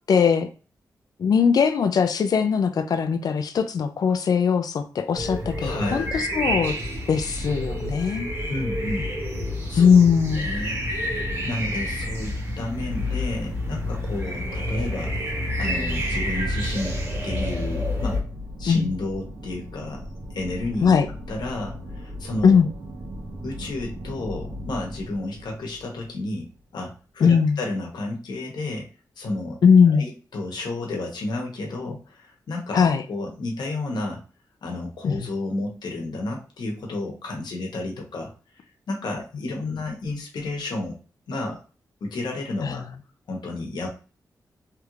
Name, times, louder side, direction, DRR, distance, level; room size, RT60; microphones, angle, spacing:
voice 1, 0.1-0.5 1.2-6.8 7.1-8.3 9.8-10.5 18.7-18.9 20.8-21.1 22.4-22.7 27.2-27.6 29.6-30.0 32.7-33.0 35.0-35.3 42.6-42.8, left 6 dB, 65° left, 8 dB, 0.4 m, -20 dB
sound 1, 5.2-18.2, equal, 35° right, 1.2 m, -28 dB
voice 2, 5.6-6.1 8.5-9.1 9.7-10.0 10.3-15.2 15.6-18.2 18.6-20.0 20.3-21.0 21.3-22.6 23.4-28.9 29.2-34.2 34.6-38.3 38.9-41.0 41.3-41.6 42.0-42.8 43.3-43.9, left 2 dB, 85° left, 0 dB, 1.0 m, -31 dB
sound 2, 11.7-26.8, equal, 80° right, 1.2 m, -40 dB
3.3 x 2.4 x 3.1 m, 0.36 s
wide cardioid pair, 115°, 7 cm